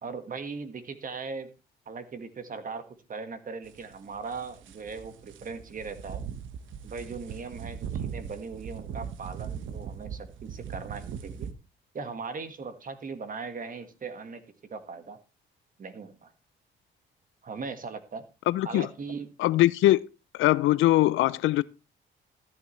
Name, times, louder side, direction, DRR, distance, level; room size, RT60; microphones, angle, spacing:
voice 1, 0.0-1.5 1.8-6.2 6.8-11.5 11.9-14.4 14.7-15.2 15.8-16.3 17.4-18.2 18.6-19.3, right 4 dB, 45° right, 1.7 m, -39 dB
sound 1, 3.6-11.5, right 8 dB, 75° right, 1.2 m, -39 dB
voice 2, 18.5-18.9 19.4-20.1 20.3-21.6, left 15 dB, 85° left, 0.5 m, -22 dB
14.0 x 9.5 x 3.3 m
cardioid pair, 90°, 20 cm